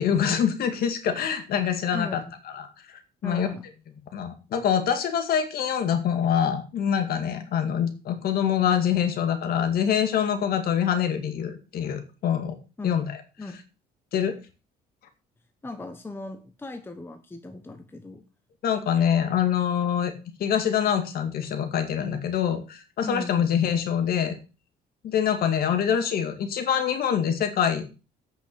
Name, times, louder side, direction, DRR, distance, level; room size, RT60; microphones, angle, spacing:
voice 1, 0.0-2.2 2.5-3.5 4.1-12.6 12.8-13.1 14.1-14.3 18.6-20.1 20.4-24.3 25.0-27.8, left 8 dB, 65° left, 7 dB, 2.0 m, -25 dB
voice 2, 1.9-2.2 3.2-3.6 12.8-13.0 13.4-13.6 15.6-18.2 23.0-23.5, left 3 dB, 15° left, 7 dB, 1.0 m, -37 dB
8.5 x 6.2 x 6.6 m, 0.32 s
cardioid pair, 110°, 17 cm